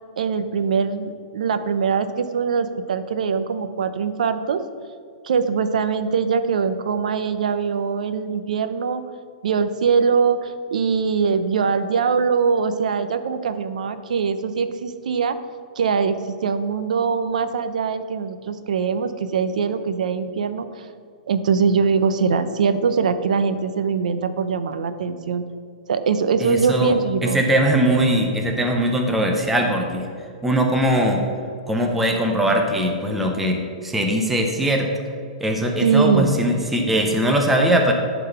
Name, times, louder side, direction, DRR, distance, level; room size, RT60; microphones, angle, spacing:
voice 1, 0.2-4.6 5.2-9.0 9.4-15.4 15.8-20.9 21.3-25.4 25.9-27.4 35.8-36.3, right 5 dB, 75° right, 11 dB, 0.6 m, -22 dB
voice 2, 26.4-27.0 27.2-30.1 30.4-31.2 31.7-34.9 35.4-37.9, right 1 dB, 5° right, 2 dB, 0.5 m, -20 dB
11.0 x 4.0 x 5.7 m, 2.3 s
hypercardioid pair, 180°, 4 cm